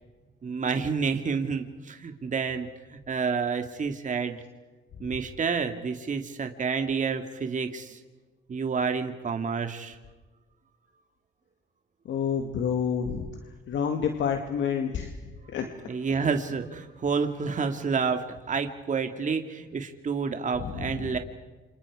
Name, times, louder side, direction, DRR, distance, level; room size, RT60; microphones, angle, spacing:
voice 1, 0.4-4.4 5.0-8.0 8.5-10.0 15.9-21.2, right 5 dB, 40° right, 6 dB, 2.1 m, -29 dB
voice 2, 12.1-13.3 13.7-15.2 15.5-15.7 20.6-21.1, left 7 dB, 70° left, 5 dB, 2.3 m, -28 dB
29.0 x 27.0 x 4.9 m, 1.2 s
cardioid pair, 90°, 20 cm